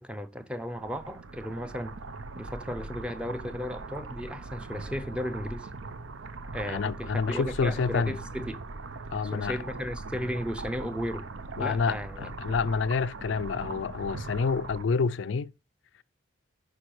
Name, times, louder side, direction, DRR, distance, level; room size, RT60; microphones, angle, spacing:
voice 1, 0.0-2.0 2.4-5.7 6.5-8.6 9.2-11.3 11.6-12.3, equal, 5° right, 0.5 m, -35 dB
sound 1, 0.7-14.8, right 3 dB, 75° right, 0.7 m, -40 dB
voice 2, 6.7-8.2 9.1-9.6 11.6-15.5, left 5 dB, 70° left, 0.4 m, -28 dB
10.5 x 5.3 x 3.1 m
head